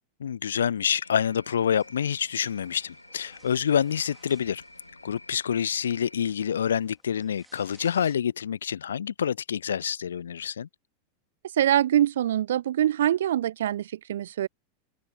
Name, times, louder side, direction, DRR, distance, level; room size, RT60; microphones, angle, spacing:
voice 1, 0.2-4.6 5.0-10.7, left 8 dB, 65° left, 0.5 m, -27 dB
sound 1, 1.0-6.3, left 2 dB, 85° left, 7.8 m, -51 dB
sound 2, 1.5-8.2, right 2 dB, 10° right, 4.2 m, -62 dB
voice 2, 11.5-14.5, right 11 dB, 60° right, 0.5 m, -24 dB
open air
figure-of-eight pair, 90°, 0 cm